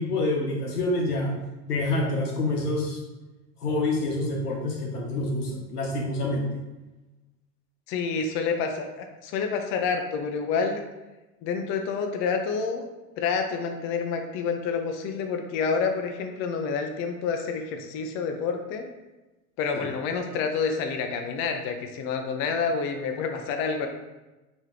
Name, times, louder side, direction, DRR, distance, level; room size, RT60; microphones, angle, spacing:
voice 1, 0.0-1.3 1.7-3.0 3.6-6.5 19.8-19.9, left 2 dB, 90° left, -2 dB, 1.2 m, -27 dB
voice 2, 7.9-10.8 11.4-12.8 13.2-18.9 19.6-23.9, left 5 dB, 30° left, 4 dB, 0.4 m, -28 dB
3.3 x 3.0 x 3.7 m, 1.1 s
hypercardioid pair, 100°, 45 cm